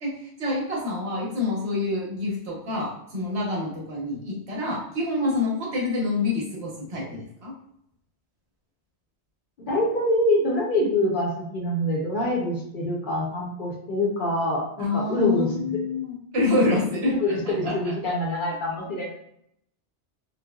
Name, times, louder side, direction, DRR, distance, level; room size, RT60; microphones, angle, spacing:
voice 1, 0.0-7.6 14.8-17.1 17.4-17.7 18.0-18.1, left 2 dB, 70° right, -4 dB, 1.1 m, -27 dB
voice 2, 9.7-15.8 17.2-19.1, left 1 dB, 55° left, -3 dB, 0.7 m, -25 dB
3.1 x 2.0 x 2.2 m, 0.74 s
omnidirectional pair, 1.2 m